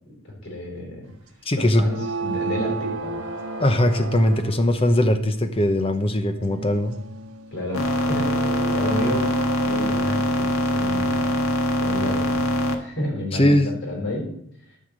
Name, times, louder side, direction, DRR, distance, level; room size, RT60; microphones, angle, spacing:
voice 1, 0.2-1.1 1.5-3.2 7.5-9.3 9.6-11.4 11.8-12.4 12.8-13.6 13.8-14.3, left 1 dB, 60° left, -1 dB, 4.6 m, -30 dB
voice 2, 1.5-1.8 3.6-7.0 13.3-13.7, left 1 dB, 25° left, 8 dB, 0.8 m, -20 dB
sound 1, 1.8-4.8 6.3-10.2, right 4 dB, 80° right, 1.4 m, -33 dB
sound 2, 7.7-12.7, left 1 dB, 80° left, 1.4 m, -23 dB
13.0 x 5.8 x 6.4 m, 0.75 s
head